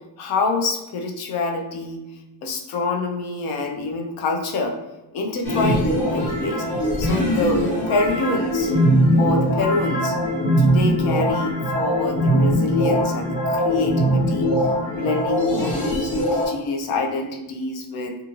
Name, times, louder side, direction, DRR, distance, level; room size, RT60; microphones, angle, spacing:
voice 1, 0.2-2.0 2.4-4.8 5.1-6.6 7.0-8.7 9.2-10.1 10.6-14.5 14.9-18.2, left 3 dB, 60° left, 2 dB, 0.6 m, -26 dB
sound 1, 5.4-16.5, equal, 45° left, 1.1 m, -21 dB
2.6 x 2.4 x 2.9 m, 1.0 s
cardioid pair, 135°, 43 cm